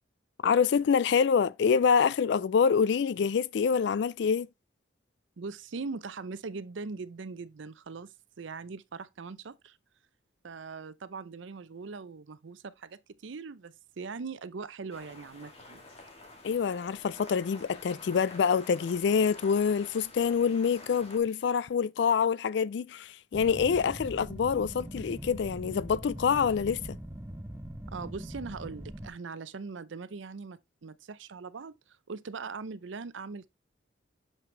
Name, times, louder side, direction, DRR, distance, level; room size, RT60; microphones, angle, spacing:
voice 1, 0.4-4.5 16.4-27.0, left 6 dB, 60° left, 0.3 m, -26 dB
voice 2, 5.4-9.8 10.4-15.8 27.9-33.5, right 4 dB, 75° right, 0.6 m, -41 dB
sound 1, 14.9-21.2, left 2 dB, 30° left, 1.5 m, -49 dB
sound 2, 23.3-29.1, right 1 dB, 15° right, 0.9 m, -42 dB
6.8 x 5.8 x 3.2 m
head